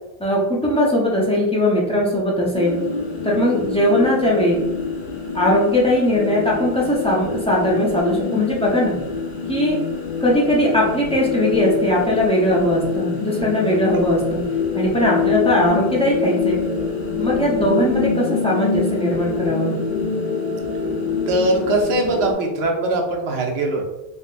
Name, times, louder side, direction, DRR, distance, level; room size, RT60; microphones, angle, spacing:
voice 1, 0.2-2.8 3.2-4.6 5.3-9.0 9.5-9.8 10.2-14.4 14.7-16.6 17.2-19.8, left 1 dB, 10° left, -5 dB, 0.5 m, -19 dB
sound 1, 2.5-22.3, left 5 dB, 90° left, 0.9 m, -25 dB
voice 2, 21.3-23.8, right 1 dB, 85° right, 2 dB, 0.9 m, -21 dB
3.6 x 2.2 x 2.4 m, 1.0 s
omnidirectional pair, 1.1 m